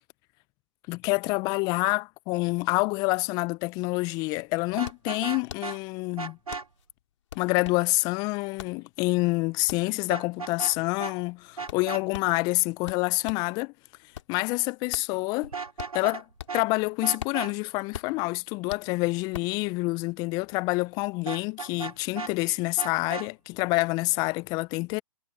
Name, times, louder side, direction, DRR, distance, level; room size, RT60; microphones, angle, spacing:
voice 1, 0.9-6.4 7.4-13.7 14.3-15.5 15.9-16.2 16.5-25.0, left 25 dB, 20° left, 0.5 m, -27 dB
Vehicle horn car horn honking, 4.7-5.8 6.2-6.6 10.1-10.7 11.0-11.1 11.6-12.0 15.4-16.2 16.5-16.7 17.0-17.5 21.3-22.3 22.8-23.3, right 5 dB, 85° right, 2.2 m, -35 dB
sound 1, 4.8-13.6 13.9-16.8 17.0-19.6, left 10 dB, 55° left, 3.6 m, -43 dB
figure-of-eight pair, 130°, 18 cm